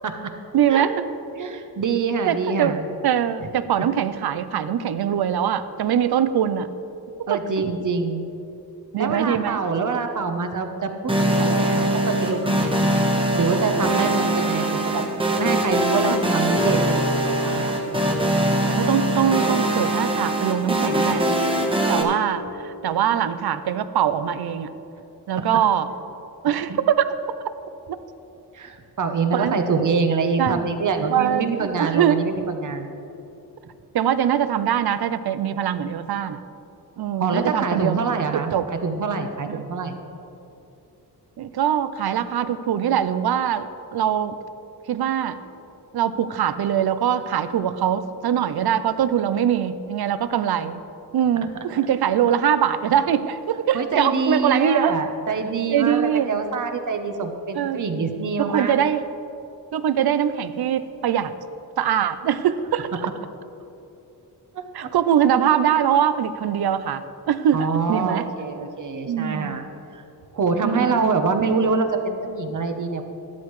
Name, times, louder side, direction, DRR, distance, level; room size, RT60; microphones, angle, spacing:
voice 1, 0.5-0.9 2.3-2.7 3.0-6.7 8.9-9.6 18.7-21.2 21.9-24.7 25.3-25.9 26.4-27.1 27.9-28.0 29.3-29.8 30.4-30.6 31.1-32.2 33.9-36.4 37.0-37.9 38.3-38.6 39.5-39.6 41.4-44.4 44.9-45.4 45.9-50.8 51.1-55.0 55.7-56.3 57.5-57.8 58.4-59.0 59.7-61.3 61.8-63.1 64.7-68.3 69.1-69.6 70.6-71.1, right 9 dB, 70° right, 13 dB, 0.6 m, -22 dB
voice 2, 1.3-2.9 3.4-3.5 7.3-8.2 9.0-11.1 11.4-13.0 13.3-15.0 15.4-17.7 25.4-25.5 26.7-26.8 28.5-32.9 37.2-40.0 53.7-58.8 64.5-64.9 67.5-69.6 69.9-70.0 70.3-73.0, right 4 dB, 50° right, 6 dB, 0.9 m, -25 dB
sound 1, 11.1-22.0, right 1 dB, 15° right, 1.1 m, -22 dB
12.5 x 11.5 x 3.2 m, 2.9 s
wide cardioid pair, 140°, 40 cm